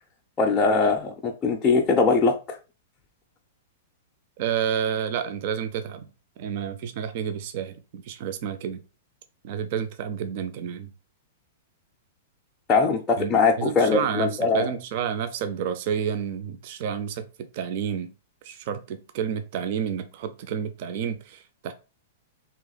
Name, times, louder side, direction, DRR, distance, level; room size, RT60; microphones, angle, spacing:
voice 1, 0.4-2.6 12.7-14.7, left 4 dB, 15° left, 0.4 m, -21 dB
voice 2, 4.4-6.1 6.4-8.8 9.4-10.9 13.2-14.3 14.5-18.1 18.4-21.7, right 8 dB, 45° right, 0.4 m, -30 dB
3.2 x 2.9 x 4.0 m
supercardioid pair, 165°, 0 cm